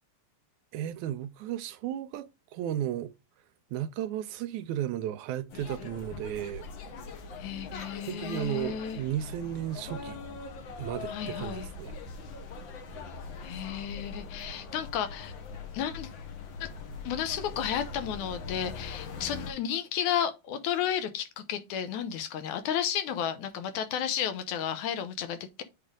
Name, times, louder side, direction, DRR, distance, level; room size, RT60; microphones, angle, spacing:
voice 1, 0.7-3.1 3.7-6.7 8.1-10.2 10.8-12.0, right 11 dB, 85° right, 2.1 m, -34 dB
sound 1, 5.5-19.5, left 4 dB, 60° left, 1.3 m, -42 dB
voice 2, 7.4-9.0 11.1-11.7 13.4-15.3 15.7-16.1 16.6-16.7 17.0-25.6, left 9 dB, 80° left, 2.4 m, -32 dB
8.4 x 3.3 x 3.7 m
omnidirectional pair, 3.4 m